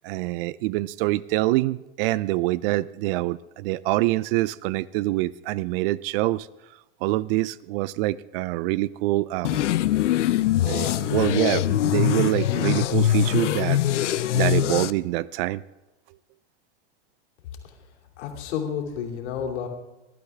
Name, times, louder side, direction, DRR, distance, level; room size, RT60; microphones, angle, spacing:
voice 1, 0.0-6.5 7.0-9.7 10.7-13.8 14.3-15.6, right 18 dB, 55° right, 0.5 m, -25 dB
sound 1, 9.4-14.9, left 12 dB, 90° left, 0.6 m, -23 dB
voice 2, 18.2-19.7, left 7 dB, 70° left, 2.8 m, -30 dB
19.0 x 12.0 x 3.5 m
hypercardioid pair, 110°, 35 cm